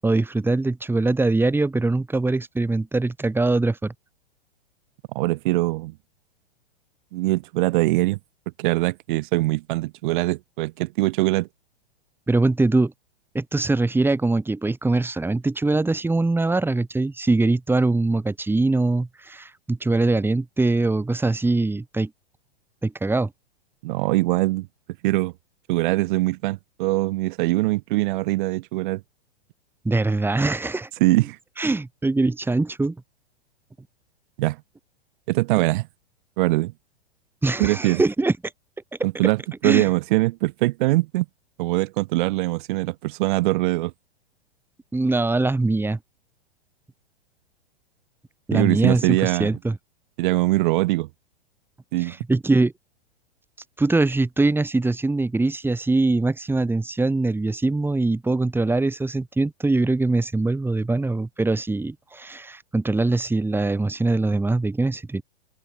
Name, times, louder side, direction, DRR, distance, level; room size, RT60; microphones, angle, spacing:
voice 1, 0.0-3.9 12.3-12.9 13.3-22.1 22.8-23.3 29.8-30.9 31.6-32.9 37.4-38.3 39.6-39.9 44.9-46.0 48.5-49.8 52.0-52.7 53.8-65.2, right 2 dB, 5° right, 7.7 m, -22 dB
voice 2, 5.1-5.9 7.1-8.2 8.6-11.5 23.8-24.7 25.0-25.3 25.7-29.0 31.0-31.4 34.4-34.6 35.3-35.9 36.4-36.7 37.6-38.0 39.0-41.2 41.6-43.9 48.5-49.6 50.2-51.1 51.9-52.1, right 20 dB, 50° right, 6.6 m, -22 dB
open air
hypercardioid pair, 110°, 31 cm